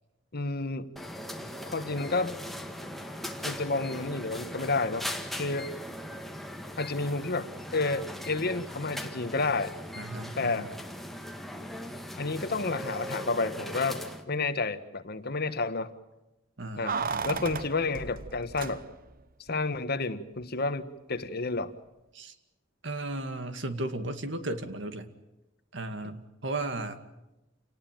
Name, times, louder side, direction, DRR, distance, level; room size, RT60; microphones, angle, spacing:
voice 1, 0.3-0.9 1.6-2.4 3.4-5.1 5.4-5.7 6.8-9.7 10.4-10.7 12.2-15.9 16.8-16.9 17.2-18.8 19.5-21.7, left 3 dB, 55° left, 11 dB, 1.4 m, -30 dB
sound 1, 1.0-14.2, equal, ahead, 1.9 m, -39 dB
voice 2, 10.0-10.7 16.6-17.4 22.1-22.3 22.8-25.1 25.7-27.0, right 2 dB, 70° right, 9 dB, 2.2 m, -35 dB
Keys jangling, 16.9-19.2 19.5-19.6, right 5 dB, 50° right, 0.9 m, -34 dB
29.0 x 19.0 x 9.2 m, 0.97 s
head